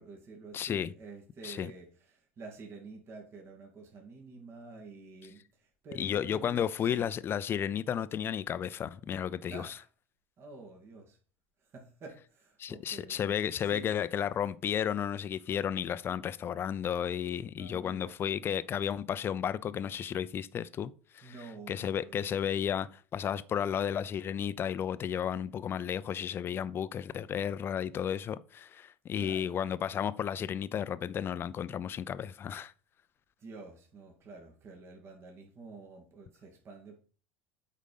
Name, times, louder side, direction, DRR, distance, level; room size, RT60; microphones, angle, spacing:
voice 1, 0.0-7.1 9.5-9.9 10.4-11.2 11.6-13.4 13.6-13.9 17.6-18.2 21.2-22.2 29.2-29.6 33.4-37.0, right 3 dB, 40° right, 2.4 m, -49 dB
voice 2, 0.5-0.9 1.4-1.7 5.9-9.7 12.6-21.3 21.7-32.7, left 9 dB, 35° left, 0.6 m, -33 dB
8.4 x 5.1 x 5.4 m
hypercardioid pair, 80°, 6 cm